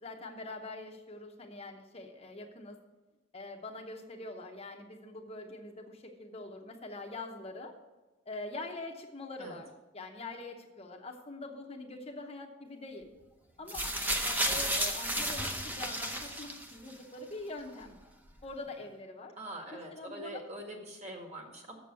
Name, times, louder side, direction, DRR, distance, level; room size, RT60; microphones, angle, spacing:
voice 1, 0.0-2.8 3.3-7.8 8.3-13.1 13.6-13.9 14.2-18.0 18.4-19.3 19.7-20.4, left 2 dB, 30° left, 2 dB, 0.8 m, -44 dB
sound 1, 13.7-16.9 17.8-17.9, equal, 10° right, 0.7 m, -32 dB
voice 2, 19.4-21.7, right 1 dB, 35° right, 2 dB, 1.7 m, -44 dB
7.1 x 6.9 x 7.6 m, 1.2 s
head